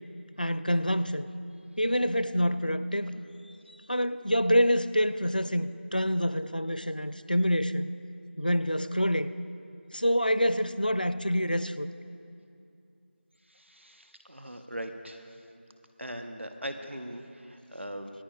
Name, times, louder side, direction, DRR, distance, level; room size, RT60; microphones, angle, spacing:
voice 1, 0.4-1.3 1.8-3.2 3.9-7.9 8.4-9.3 9.9-11.9, equal, 45° left, 14 dB, 0.5 m, -26 dB
voice 2, 13.5-15.4 16.0-18.1, equal, 75° right, 6 dB, 1.1 m, -40 dB
27.0 x 10.0 x 2.5 m, 2.5 s
figure-of-eight pair, 180°, 6 cm